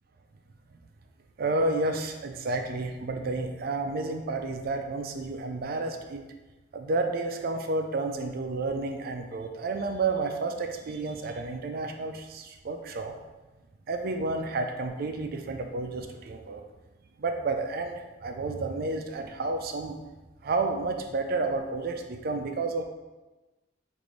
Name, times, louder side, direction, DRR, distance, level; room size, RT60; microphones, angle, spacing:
voice 1, 1.4-6.2 6.7-13.2 13.9-16.6 17.2-20.0 20.4-22.8, right 3 dB, 55° right, 5 dB, 0.4 m, -31 dB
5.2 x 2.6 x 3.1 m, 1.1 s
head